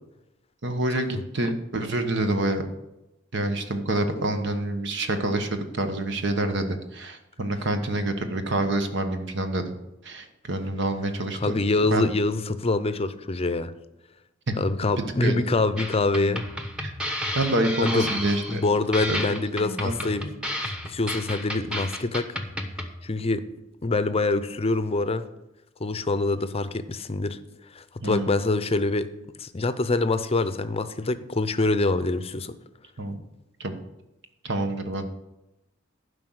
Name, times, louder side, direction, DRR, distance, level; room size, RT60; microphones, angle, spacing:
voice 1, 0.6-2.6 3.3-9.6 10.0-11.6 11.9-12.0 14.5-14.6 15.2-15.4 16.8-16.9 17.3-18.6 19.1-19.2 19.8-20.0 28.0-28.3 33.0-33.2 33.6-33.8 34.4-35.0, right 1 dB, 65° right, 7 dB, 1.3 m, -27 dB
voice 2, 11.3-13.7 14.6-16.4 17.8-18.1 18.5-20.3 20.8-22.3 23.0-23.5 23.8-25.3 25.8-27.4 27.7-29.1 29.4-32.5, left 2 dB, 30° left, 12 dB, 0.6 m, -25 dB
sound 1, 15.8-22.9, equal, 5° right, 1.1 m, -32 dB
11.5 x 5.3 x 7.9 m, 0.94 s
head